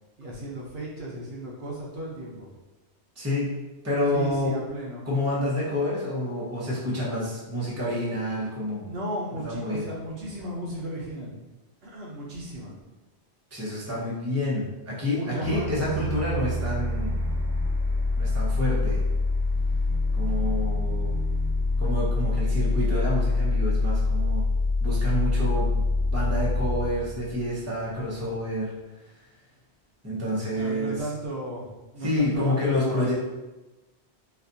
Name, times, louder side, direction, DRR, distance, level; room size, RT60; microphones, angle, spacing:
voice 1, 0.2-2.5 4.1-5.1 8.8-11.4 11.8-12.7 15.0-16.0 30.5-33.1, right 1 dB, 65° right, -3 dB, 0.9 m, -35 dB
voice 2, 3.2-3.5 3.8-4.5 5.0-8.9 9.4-9.8 13.5-17.2 18.2-19.0 20.1-21.2 21.8-24.4 24.8-25.9 26.1-28.7 30.0-31.0 32.0-33.1, left 1 dB, 15° right, -6 dB, 0.8 m, -28 dB
sound 1, 15.4-28.1, left 3 dB, 55° left, 1.2 m, -25 dB
4.2 x 2.4 x 2.6 m, 1.1 s
omnidirectional pair, 1.1 m